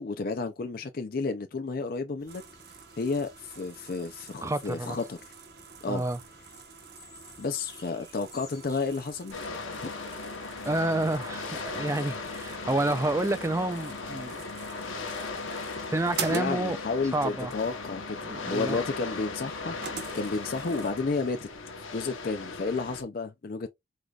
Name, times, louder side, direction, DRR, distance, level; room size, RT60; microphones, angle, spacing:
voice 1, 0.0-2.4 3.0-5.2 5.8-6.0 7.4-9.4 9.8-9.9 16.3-18.2 18.5-19.7 20.1-21.4 21.9-23.7, left 4 dB, 45° left, 0.5 m, -31 dB
sound 1, 2.2-9.4, left 3 dB, 20° left, 0.8 m, -55 dB
sound 2, 2.3-20.9, right 6 dB, 55° right, 0.8 m, -46 dB
voice 2, 4.4-5.0 5.9-6.2 10.6-14.4 15.8-16.8 17.1-17.5 18.2-18.8, right 2 dB, 15° right, 0.4 m, -29 dB
sound 3, 9.3-23.0, left 4 dB, 80° left, 1.0 m, -37 dB
4.8 x 3.9 x 2.3 m
head